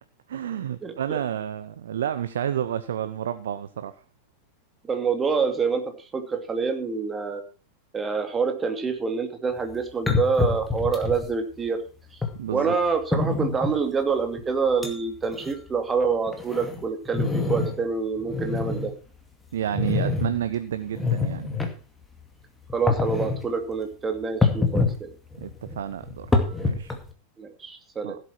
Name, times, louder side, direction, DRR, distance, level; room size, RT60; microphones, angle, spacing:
voice 1, 0.3-3.9 12.3-12.8 19.5-21.5 25.4-26.3 26.6-26.9 28.0-28.2, right 9 dB, 60° right, 12 dB, 0.8 m, -30 dB
voice 2, 0.8-1.2 4.9-7.4 7.9-11.8 12.1-12.2 12.5-18.9 22.7-25.1 27.4-28.2, right 5 dB, 20° right, 6 dB, 2.6 m, -26 dB
sound 1, 9.6-9.7 10.1-11.3 12.2-12.3 13.1-13.8 14.4-14.5 14.8-14.9 15.2-15.5 16.0-17.8 18.2-18.9 19.7-20.3 20.9-21.7 22.7-23.4 24.4-25.0 25.3-27.1, left 3 dB, 10° left, 2.3 m, -25 dB
16.0 x 8.2 x 4.6 m, 0.34 s
figure-of-eight pair, 90°, 0 cm